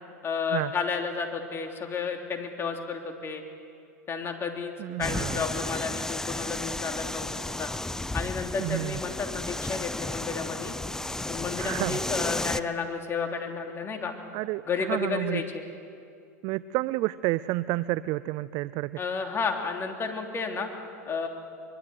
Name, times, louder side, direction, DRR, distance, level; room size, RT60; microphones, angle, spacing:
voice 1, 0.2-3.4 4.1-4.7 5.0-7.7 8.1-10.7 11.3-14.1 14.7-15.6 19.0-20.7 21.1-21.3, left 5 dB, 25° left, 3 dB, 3.3 m, -32 dB
voice 2, 4.8-5.4 8.6-9.0 11.6-12.0 14.3-15.4 16.4-18.9, right 18 dB, 50° right, 17 dB, 0.5 m, -30 dB
sound 1, 5.0-12.6, left 2 dB, 5° left, 0.6 m, -33 dB
24.0 x 23.5 x 8.0 m, 2.5 s
hypercardioid pair, 105°, 9 cm